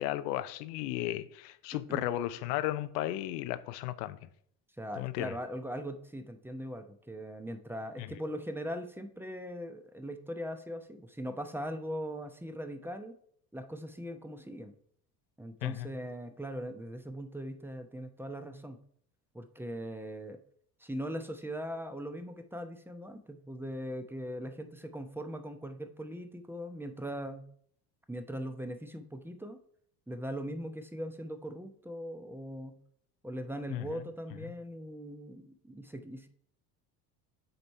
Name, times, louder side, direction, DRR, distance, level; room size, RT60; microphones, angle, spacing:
voice 1, 0.0-4.2 5.0-5.3 8.0-8.1 15.6-15.9 33.7-33.9, left 14 dB, 75° left, 0.7 m, -34 dB
voice 2, 1.7-2.0 4.8-13.1 13.5-14.7 15.4-18.8 19.3-20.4 20.8-27.4 28.1-29.6 30.1-32.8 33.2-36.3, equal, 5° right, 0.8 m, -40 dB
7.8 x 4.0 x 4.5 m
hypercardioid pair, 75°, 49 cm